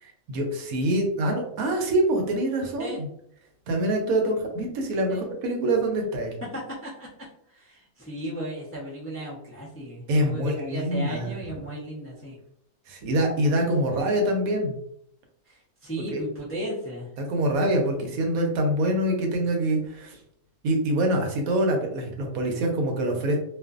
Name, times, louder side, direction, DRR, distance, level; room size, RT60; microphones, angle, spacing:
voice 1, 0.3-3.1 3.7-6.3 10.1-11.3 12.9-14.8 16.1-16.2 17.2-20.2 20.6-23.4, right 1 dB, 75° right, 2 dB, 1.0 m, -25 dB
voice 2, 6.5-7.1 7.5-12.4 15.5-17.1, right 1 dB, 20° left, -7 dB, 0.3 m, -35 dB
2.5 x 2.4 x 2.3 m, 0.72 s
omnidirectional pair, 1.5 m